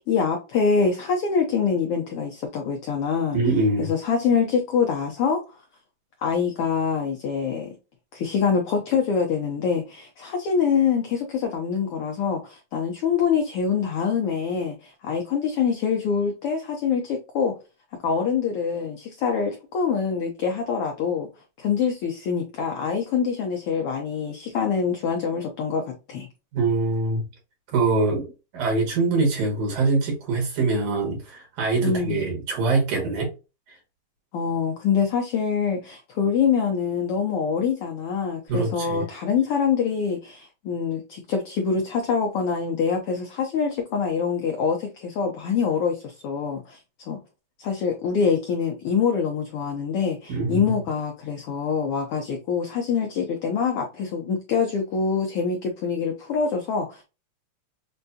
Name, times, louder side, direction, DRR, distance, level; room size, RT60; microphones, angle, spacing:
voice 1, 0.0-3.4 3.8-5.4 6.2-7.7 8.1-17.5 18.0-21.3 21.6-26.3 31.8-32.3 34.3-46.8 47.1-47.2 47.6-57.0, left 6 dB, 85° left, 1.2 m, -25 dB
voice 2, 3.3-3.9 26.5-27.3 27.7-33.3 33.7-33.8 38.5-39.0 50.3-50.8, right 3 dB, 90° right, 3.2 m, -24 dB
6.3 x 2.2 x 2.7 m
omnidirectional pair, 3.3 m